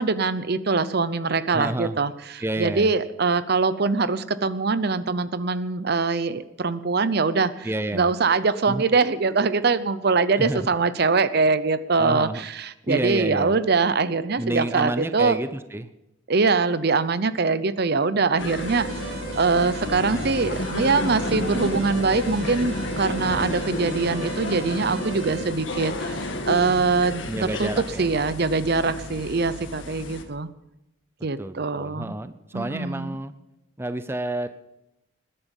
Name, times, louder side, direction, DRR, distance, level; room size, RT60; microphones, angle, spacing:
voice 1, 0.0-15.4 16.3-30.5 31.2-32.1 32.5-33.2, right 4 dB, 55° right, 15 dB, 0.7 m, -23 dB
voice 2, 1.5-2.0 2.4-2.9 7.6-8.1 8.7-8.8 10.4-10.6 12.0-12.4 12.8-13.6 14.4-15.9 27.3-28.1 31.4-33.3 33.8-34.5, right 1 dB, 10° right, 10 dB, 0.5 m, -29 dB
sound 1, 18.4-30.2, left 1 dB, 70° left, 1.9 m, -31 dB
sound 2, 18.6-25.4, right 4 dB, 90° right, 5.1 m, -37 dB
20.5 x 11.0 x 5.4 m, 0.91 s
head